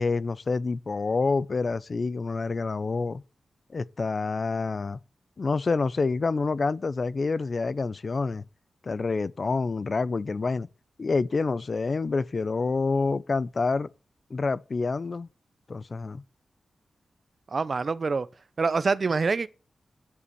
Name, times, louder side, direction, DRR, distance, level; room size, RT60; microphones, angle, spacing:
voice 1, 0.0-3.2 3.7-5.0 5.4-8.4 8.8-10.7 11.0-13.9 14.3-15.3 15.7-16.2, left 4 dB, 35° left, 0.5 m, -27 dB
voice 2, 17.5-18.3 18.6-19.5, right 4 dB, 40° right, 0.7 m, -25 dB
9.8 x 8.5 x 6.9 m
wide cardioid pair, 180°, 0 cm